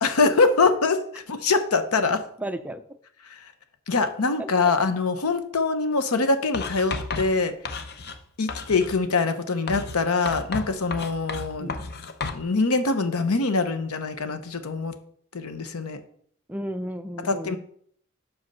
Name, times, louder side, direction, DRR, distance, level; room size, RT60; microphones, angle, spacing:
voice 1, 0.0-2.2 3.3-3.5 3.9-7.5 8.4-11.8 12.3-14.9 15.3-16.0 17.2-17.6, left 3 dB, 80° left, 9 dB, 0.8 m, -24 dB
voice 2, 2.4-2.8 4.4-4.7 11.6-11.8 16.5-17.6, right 1 dB, 5° right, 8 dB, 0.4 m, -33 dB
Writing, 6.5-8.2 8.5-9.0 9.7-12.5, left 4 dB, 45° left, 0.6 m, -33 dB
6.2 x 5.2 x 5.5 m, 0.62 s
head